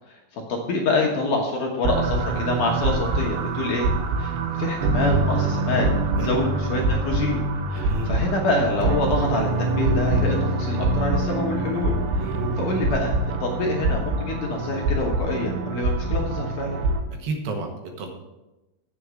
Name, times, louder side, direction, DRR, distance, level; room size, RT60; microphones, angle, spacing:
voice 1, 0.3-3.9 4.2-5.9 6.2-7.4 7.7-12.3 12.6-13.1 13.4-16.8, left 2 dB, 65° left, 0 dB, 2.2 m, -26 dB
sound 1, 1.8-17.0, right 2 dB, 90° right, 2.9 m, -24 dB
voice 2, 7.7-8.1 12.2-12.7 17.2-18.1, right 3 dB, 75° right, 3 dB, 2.7 m, -31 dB
8.4 x 6.2 x 6.9 m, 1.0 s
omnidirectional pair, 4.6 m